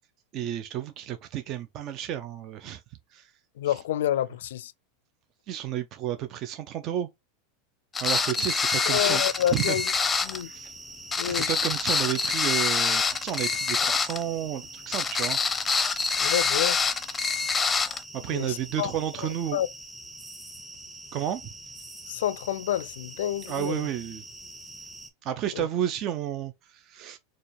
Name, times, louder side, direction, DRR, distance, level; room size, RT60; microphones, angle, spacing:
voice 1, 0.3-2.8 3.1-3.3 3.7-3.8 5.5-7.1 8.0-9.2 9.5-9.8 10.4-10.7 11.2-16.1 18.1-19.6 21.1-21.4 23.5-24.2 25.2-27.2, right 11 dB, 45° right, 0.5 m, -32 dB
voice 2, 3.6-4.7 8.9-9.9 10.2-10.5 11.2-11.6 16.2-16.8 18.3-18.9 19.5-19.7 22.1-23.9 25.5-25.7, left 11 dB, 75° left, 0.4 m, -29 dB
sound 1, 7.9-10.4 11.1-14.2 14.9-18.0, left 4 dB, 20° left, 0.6 m, -26 dB
sound 2, 9.2-25.1, right 2 dB, 10° right, 2.0 m, -44 dB
4.3 x 2.4 x 3.0 m
hypercardioid pair, 105°, 0 cm